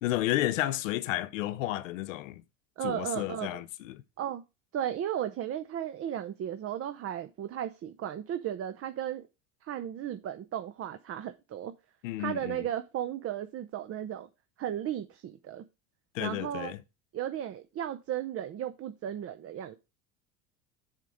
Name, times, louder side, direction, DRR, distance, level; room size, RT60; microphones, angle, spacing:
voice 1, 0.0-2.4 2.8-4.0 12.0-12.6 16.1-16.8, left 15 dB, 80° left, 0.7 m, -32 dB
voice 2, 2.8-3.6 4.2-4.4 4.7-9.2 9.6-11.7 12.2-14.3 14.6-15.6 16.2-16.7 17.1-19.7, right 10 dB, 40° right, 0.7 m, -35 dB
7.4 x 3.7 x 6.3 m
hypercardioid pair, 85°, 38 cm